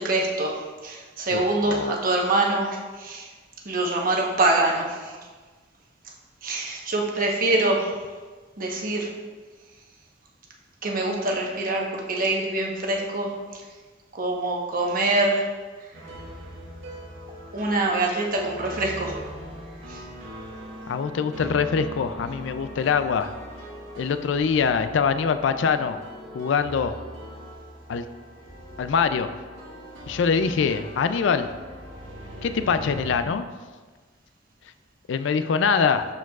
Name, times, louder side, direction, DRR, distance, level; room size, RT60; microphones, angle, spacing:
voice 1, 0.0-3.3 3.6-5.2 6.4-7.9 8.6-9.1 10.8-13.6 14.1-15.5 17.5-19.3 19.9-20.0, right 2 dB, 50° right, 0 dB, 1.0 m, -25 dB
voice 2, 1.3-2.0 20.9-23.3 24.0-26.0 26.3-26.9 27.9-28.1 28.8-29.3 30.1-31.5 32.4-33.5 35.1-36.1, left 6 dB, 70° left, 10 dB, 0.4 m, -23 dB
sound 1, 15.9-33.2, equal, 85° right, 1.7 m, -40 dB
12.0 x 4.6 x 2.3 m, 1.4 s
head